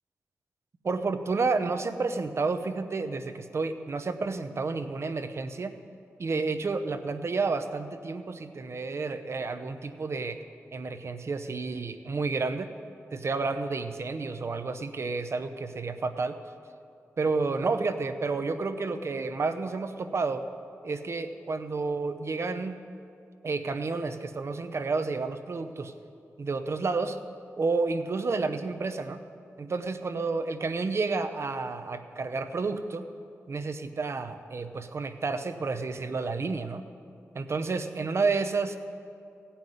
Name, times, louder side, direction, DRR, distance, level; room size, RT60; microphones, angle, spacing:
voice 1, 0.8-5.7 6.2-10.4 10.7-12.7 13.1-16.4 17.2-20.4 20.8-22.8 23.4-25.9 26.4-27.2 27.6-29.2 29.6-33.0 33.5-36.8 37.3-38.8, right 4 dB, 55° right, 8 dB, 0.8 m, -30 dB
16.5 x 5.7 x 9.3 m, 2.5 s
cardioid pair, 70°, 5 cm